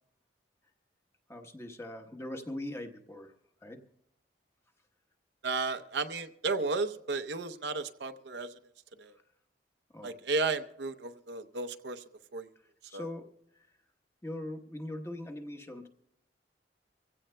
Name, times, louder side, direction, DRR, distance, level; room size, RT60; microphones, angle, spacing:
voice 1, 1.3-3.3 3.6-3.8 9.9-10.1 12.9-13.3 13.5-13.7 14.2-15.9, left 1 dB, 15° left, 5 dB, 1.1 m, -41 dB
voice 2, 5.4-8.6 9.0-9.1 10.0-12.0 12.3-12.5 12.9-13.1, right 3 dB, 85° right, 10 dB, 0.7 m, -33 dB
25.5 x 16.0 x 2.2 m, 0.79 s
head